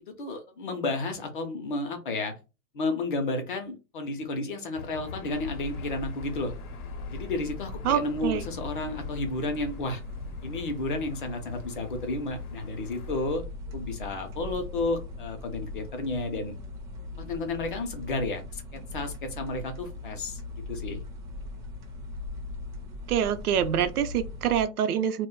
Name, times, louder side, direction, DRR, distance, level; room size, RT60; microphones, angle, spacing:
voice 1, 0.1-2.3 2.7-6.5 7.1-10.0 10.4-13.4 13.7-16.5 17.2-20.4 20.7-21.0, left 2 dB, 40° left, 0.4 m, -32 dB
Aircraft / Engine, 4.7-13.3, left 5 dB, 80° left, 0.6 m, -45 dB
sound 1, 5.3-24.6, left 2 dB, 35° right, 0.4 m, -40 dB
voice 2, 7.8-8.4 23.1-25.3, right 9 dB, 85° right, 0.6 m, -26 dB
2.1 x 2.1 x 3.6 m
hypercardioid pair, 155°, 44 cm